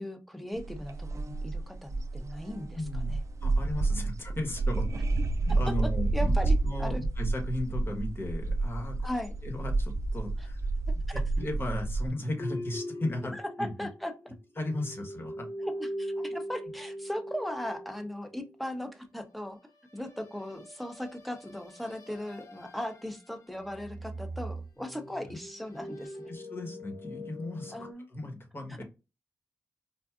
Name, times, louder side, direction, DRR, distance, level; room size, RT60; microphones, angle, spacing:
voice 1, 0.0-3.2 6.1-7.0 9.0-9.3 11.1-11.2 13.3-14.1 15.6-19.6 19.9-26.3 27.7-28.1, left 1 dB, ahead, 6 dB, 0.7 m, -38 dB
sound 1, 0.6-12.1, right 3 dB, 55° right, 0.5 m, -30 dB
voice 2, 2.7-3.1 3.4-4.9 5.4-9.0 9.4-10.6 11.1-13.7 14.6-15.5 25.3-25.4 26.3-28.8, left 1 dB, 40° left, 2 dB, 1.2 m, -36 dB
sound 2, 12.4-14.3 14.6-18.4 20.1-23.3 23.6-27.9, equal, 55° left, 0.6 m, -41 dB
4.4 x 2.4 x 2.4 m, 0.28 s
cardioid pair, 65°, 6 cm